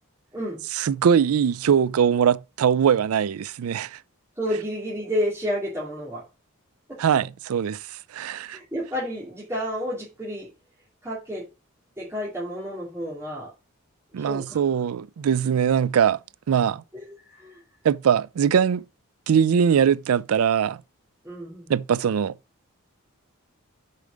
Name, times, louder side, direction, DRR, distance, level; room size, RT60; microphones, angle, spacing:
voice 1, 0.7-4.0 7.0-7.8 8.1-8.6 14.1-16.2 16.5-16.8 17.8-18.8 19.3-20.8 21.7-22.3, right 7 dB, 85° right, 0.4 m, -21 dB
voice 2, 4.4-6.2 6.9-7.0 8.5-10.5 11.0-11.4 12.0-13.5 14.2-14.6 17.1-17.6 21.2-21.7, equal, 15° right, 2.5 m, -30 dB
6.8 x 5.0 x 5.1 m
head